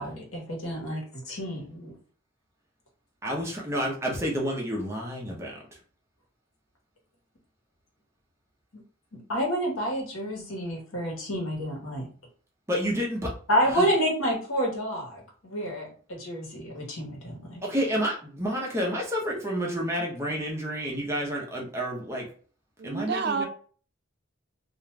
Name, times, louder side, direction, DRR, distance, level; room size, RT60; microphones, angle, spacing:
voice 1, 0.0-1.9 9.3-12.1 13.5-17.6, equal, 80° left, -1 dB, 1.1 m, -29 dB
voice 2, 3.2-5.6 12.7-13.3 13.7-13.9 17.6-22.3 22.8-23.5, equal, 15° right, -3 dB, 0.7 m, -29 dB
voice 3, 22.8-23.5, right 5 dB, 50° right, 8 dB, 0.3 m, -29 dB
2.5 x 2.3 x 3.1 m, 0.43 s
head